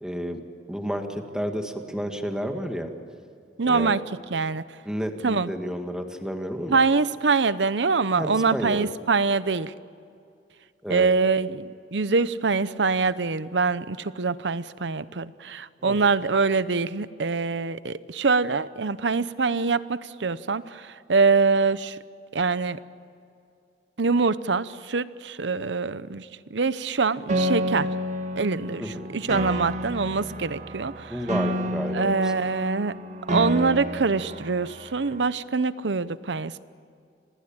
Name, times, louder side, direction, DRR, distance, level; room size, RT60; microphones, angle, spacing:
voice 1, 0.0-0.4 0.7-2.9 3.6-3.9 4.9-6.8 8.2-8.9 10.8-11.1 15.8-16.0 28.8-29.2 31.1-32.3, equal, 5° right, 5 dB, 1.9 m, -31 dB
voice 2, 3.6-4.0 4.3-4.6 5.2-5.5 6.7-9.7 10.9-22.0 22.3-22.8 24.0-27.9 28.4-28.8 29.1-31.1 31.9-33.0 33.3-36.6, right 4 dB, 90° right, 15 dB, 0.8 m, -24 dB
Piano, 27.3-35.3, equal, 45° right, 1.6 m, -30 dB
26.0 x 19.5 x 8.8 m, 2.4 s
head